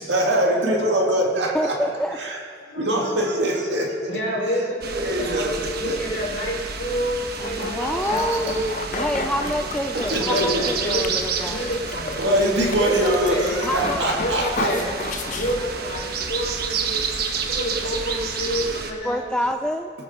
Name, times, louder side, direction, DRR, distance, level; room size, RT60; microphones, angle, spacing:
voice 1, 0.0-1.8 2.2-2.4 2.7-4.1 4.9-6.0 7.8-8.4 9.9-10.7 12.2-14.7, right 1 dB, 75° right, 0 dB, 2.2 m, -23 dB
voice 2, 1.5-2.2 7.4-8.5 8.9-11.6 13.6-14.2 14.7-14.8 19.0-19.9, equal, 5° left, 4 dB, 0.4 m, -27 dB
voice 3, 4.1-9.5 10.3-12.2 12.8-13.6 14.2-15.0 15.3-17.1 17.5-19.2, equal, 65° left, -2 dB, 3.5 m, -28 dB
sound 1, 4.8-18.9, right 5 dB, 60° right, 1.2 m, -30 dB
sound 2, 7.4-16.0, left 4 dB, 45° left, 0.7 m, -33 dB
22.5 x 9.0 x 4.3 m, 2.3 s
head